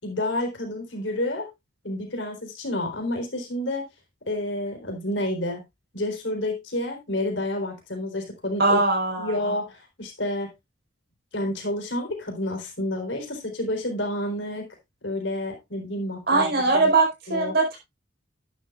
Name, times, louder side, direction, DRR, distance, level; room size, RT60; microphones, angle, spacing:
voice 1, 0.0-1.5 1.8-3.8 4.3-5.6 5.9-8.8 9.2-10.5 11.3-14.7 15.0-16.9 17.3-17.6, left 1 dB, 65° left, 3.9 m, -29 dB
voice 2, 8.6-9.4 16.3-17.8, right 3 dB, 55° right, 4.8 m, -21 dB
11.5 x 10.5 x 2.5 m
head